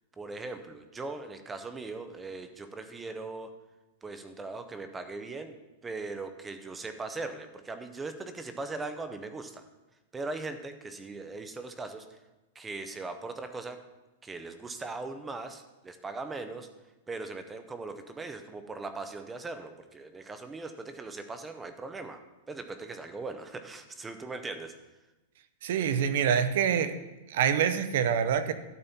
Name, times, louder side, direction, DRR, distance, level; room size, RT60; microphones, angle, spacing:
voice 1, 0.2-3.5 4.0-5.5 5.8-9.6 10.1-12.1 12.6-13.8 14.2-16.7 17.1-22.2 22.5-24.7, right 3 dB, 10° right, 9 dB, 0.5 m, -39 dB
voice 2, 25.6-26.9 27.3-28.5, right 8 dB, 50° right, 12 dB, 0.7 m, -26 dB
12.0 x 4.2 x 7.0 m, 1.1 s
supercardioid pair, 180°, 0 cm